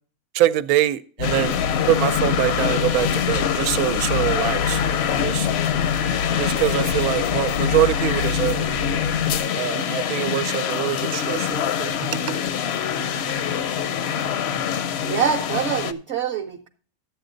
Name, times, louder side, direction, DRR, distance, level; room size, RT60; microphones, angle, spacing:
voice 1, 0.3-1.6 1.8-5.5 6.4-9.1 9.5-12.4, right 13 dB, 80° right, 1.1 m, -24 dB
sound 1, 1.2-9.4, left 6 dB, 80° left, 1.1 m, -27 dB
sound 2, 1.2-15.9, left 8 dB, 60° left, 0.7 m, -25 dB
voice 2, 15.0-16.7, right 8 dB, 55° right, 0.9 m, -25 dB
12.0 x 8.1 x 3.8 m
omnidirectional pair, 1.6 m